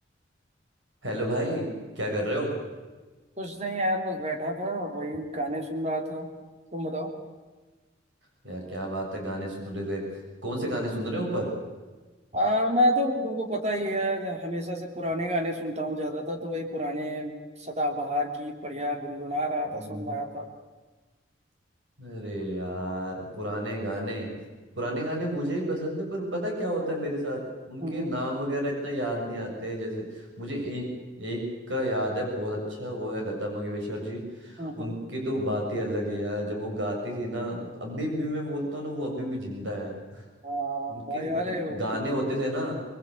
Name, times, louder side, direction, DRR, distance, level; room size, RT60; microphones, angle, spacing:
voice 1, 1.0-1.7 2.0-2.5 8.4-10.1 10.4-11.5 19.7-20.1 22.0-24.3 24.8-30.9 31.2-40.2 40.9-42.7, equal, 90° right, 0 dB, 7.1 m, -31 dB
voice 2, 3.4-6.3 6.7-7.1 12.3-20.5 27.8-28.1 34.6-35.0 40.4-41.8, equal, 35° right, 4 dB, 3.1 m, -29 dB
25.0 x 22.0 x 8.4 m, 1.3 s
head